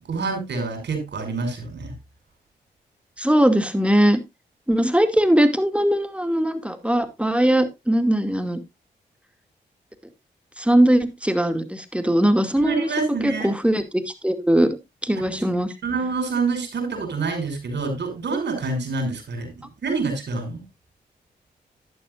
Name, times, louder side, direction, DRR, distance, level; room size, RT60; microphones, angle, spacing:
voice 1, 0.1-1.9 12.6-13.5 15.2-15.4 15.8-20.6, right 4 dB, 70° right, 5 dB, 5.8 m, -27 dB
voice 2, 3.2-4.2 4.7-8.6 10.6-12.9 13.2-14.8 15.0-15.7, right 1 dB, 5° right, 9 dB, 2.4 m, -20 dB
11.5 x 11.0 x 2.5 m, 0.22 s
supercardioid pair, 40°, 18 cm